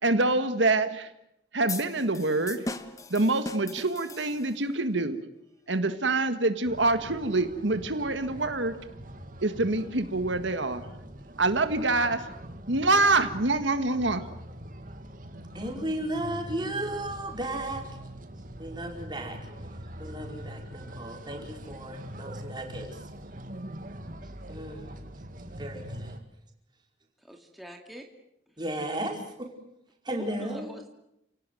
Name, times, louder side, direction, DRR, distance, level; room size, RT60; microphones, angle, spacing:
voice 1, 0.0-1.1 1.5-2.7 3.1-5.2 5.7-8.7 9.4-10.8 11.4-12.2 12.7-14.2, right 2 dB, 80° right, 9 dB, 1.7 m, -25 dB
sound 1, 1.7-4.7, left 2 dB, 20° left, 1.3 m, -39 dB
sound 2, 6.6-26.2, right 1 dB, 45° right, 2.2 m, -43 dB
voice 2, 15.5-17.8 18.6-19.4 20.0-23.0 24.5-24.9 25.6-26.2 28.6-29.5 30.0-30.7, right 1 dB, 25° right, 2 dB, 4.9 m, -34 dB
voice 3, 27.2-28.1 30.2-30.9, equal, ahead, 2 dB, 2.3 m, -44 dB
30.0 x 17.5 x 9.3 m, 0.80 s
head